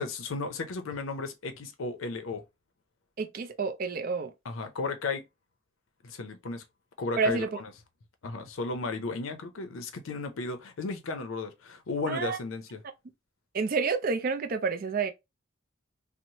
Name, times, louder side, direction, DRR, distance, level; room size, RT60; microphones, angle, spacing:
voice 1, 0.0-2.4 4.4-5.3 6.0-6.6 7.0-7.7 8.2-12.8, left 3 dB, 80° left, 0.5 m, -34 dB
voice 2, 3.2-4.3 7.2-7.5 12.1-12.4 13.5-15.1, right 4 dB, 45° right, 0.4 m, -29 dB
3.0 x 2.0 x 2.7 m
head